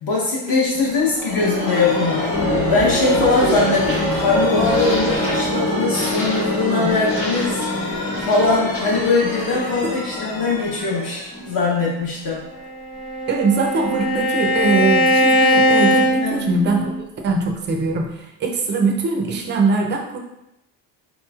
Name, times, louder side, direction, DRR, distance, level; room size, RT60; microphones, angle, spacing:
voice 1, 0.0-12.5 16.2-16.5, left 3 dB, 50° left, -4 dB, 0.8 m, -21 dB
sound 1, 0.7-12.2, left 1 dB, 30° left, 1.0 m, -24 dB
voice 2, 3.2-3.6 6.7-7.0 9.8-9.9 13.3-16.9 17.2-20.2, right 3 dB, 30° right, 1 dB, 0.3 m, -22 dB
Bowed string instrument, 12.6-17.0, equal, 85° left, 1.2 m, -19 dB
4.0 x 3.0 x 2.3 m, 0.86 s
cardioid pair, 160°, 43 cm